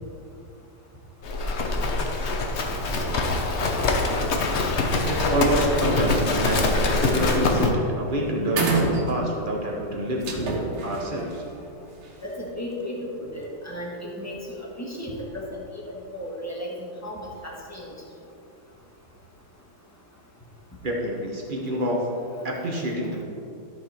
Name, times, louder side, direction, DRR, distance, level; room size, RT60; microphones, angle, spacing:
Livestock farm animals working animals, 1.2-7.7, left 3 dB, 70° left, 0.6 m, -24 dB
voice 1, 5.1-11.4 20.8-22.0 22.4-23.2, right 1 dB, 35° right, -2 dB, 0.8 m, -27 dB
sound 1, 8.0-8.1 8.5-9.6 10.2-12.3, right 3 dB, 85° right, 2.1 m, -28 dB
voice 2, 12.2-17.9, equal, 10° left, -4 dB, 1.0 m, -35 dB
13.5 x 5.0 x 4.3 m, 2.7 s
omnidirectional pair, 2.3 m